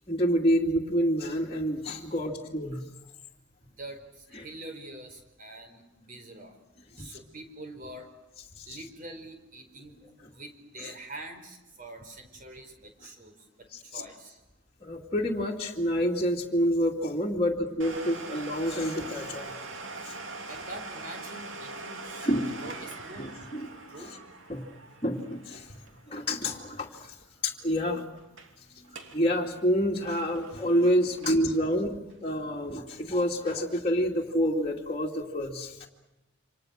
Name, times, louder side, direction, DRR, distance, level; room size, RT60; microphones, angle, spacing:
voice 1, 0.1-2.8 4.3-4.4 7.0-7.2 8.6-8.7 10.8-10.9 13.7-14.0 14.8-19.5 20.1-20.2 22.2-22.5 23.2-23.7 24.0-24.2 24.5-24.6 25.0-25.7 26.1-27.1 27.4-28.0 28.9-35.9, equal, 25° left, -3 dB, 2.5 m, -28 dB
voice 2, 4.3-6.5 7.0-8.1 8.7-10.0 10.3-12.7 13.0-13.3 13.9-14.4 20.5-22.4 22.6-23.3 23.9-24.1, right 1 dB, 40° right, 6 dB, 4.7 m, -44 dB
Domestic sounds home sounds, 17.8-27.2 27.5-27.6 28.2-28.5 28.8-29.2 29.6-31.6 32.1-32.2 32.9-33.0, right 3 dB, 60° right, 2.9 m, -42 dB
28.5 x 26.5 x 6.5 m, 0.95 s
head